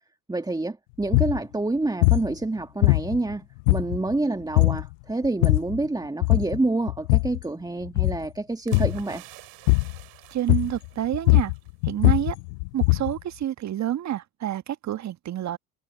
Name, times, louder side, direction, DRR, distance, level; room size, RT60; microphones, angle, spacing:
voice 1, 0.3-9.2, right 2 dB, 10° right, 2.4 m, -28 dB
sound 1, 1.0-1.4 2.0-2.3 2.8-3.3 3.7-4.1 4.6-4.9 5.2-5.8 6.2-6.6 6.9-7.4 7.9-8.3 8.7-9.0 9.7-10.0 10.5-10.9 11.1-13.2, left 30 dB, 55° left, 0.7 m, -21 dB
sound 2, 8.7-11.7 12.0-12.3, right 23 dB, 55° right, 5.7 m, -48 dB
voice 2, 10.3-11.5 11.8-12.4 12.7-15.6, right 11 dB, 35° right, 1.8 m, -28 dB
figure-of-eight pair, 65°, 48 cm